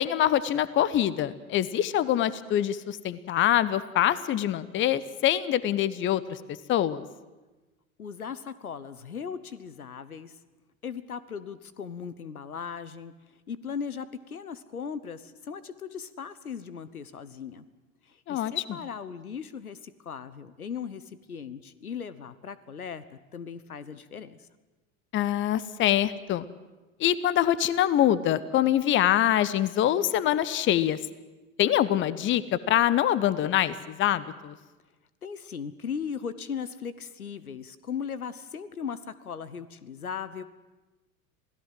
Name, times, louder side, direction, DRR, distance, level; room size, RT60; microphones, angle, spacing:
voice 1, 0.0-6.4 6.7-7.0 18.3-18.8 25.1-26.4 27.0-31.0 31.6-34.5, left 11 dB, 25° left, 18 dB, 0.9 m, -24 dB
voice 2, 8.0-10.3 10.8-17.6 18.0-24.4 35.2-40.4, left 7 dB, 80° left, 16 dB, 1.2 m, -38 dB
27.5 x 17.5 x 7.7 m, 1.2 s
figure-of-eight pair, 80°, 43 cm